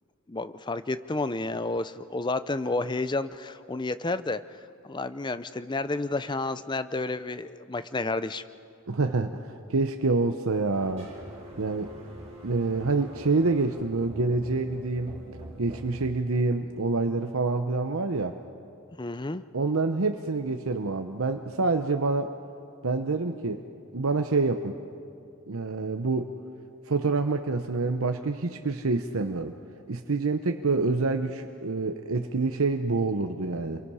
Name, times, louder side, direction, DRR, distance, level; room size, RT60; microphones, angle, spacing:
voice 1, 0.3-4.4 4.8-8.4 19.0-19.4, left 2 dB, 20° left, 13 dB, 0.6 m, -30 dB
voice 2, 8.9-9.4 9.7-11.1 11.6-11.9 12.4-15.1 15.6-18.4 19.5-22.3 22.8-23.6 23.9-24.7 25.5-26.3 26.9-29.5 29.9-33.8, right 3 dB, 80° right, 6 dB, 0.9 m, -27 dB
sound 1, 10.7-16.1, right 1 dB, 30° right, 4.4 m, -44 dB
28.0 x 23.5 x 5.6 m, 2.4 s
head